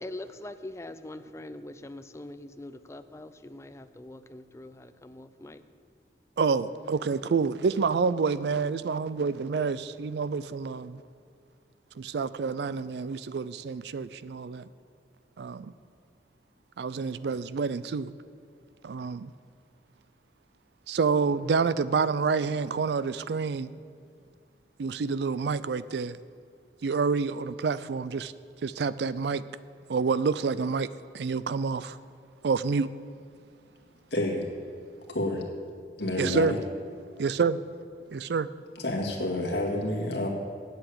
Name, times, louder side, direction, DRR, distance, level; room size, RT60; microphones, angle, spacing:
voice 1, 0.0-5.6, left 1 dB, 15° left, 0.4 m, -43 dB
voice 2, 6.4-11.0 12.0-14.7 15.4-15.7 16.8-18.1 18.8-19.3 20.9-23.8 24.8-26.2 26.8-28.3 28.6-29.4 29.9-30.9 31.1-32.0 32.4-32.9 36.2-36.5 37.2-37.6 38.1-38.5, right 5 dB, 65° right, 0.4 m, -28 dB
voice 3, 34.1-34.5 35.1-35.4 36.0-36.6 38.8-40.3, left 1 dB, 75° left, 1.9 m, -29 dB
8.4 x 7.8 x 8.6 m
head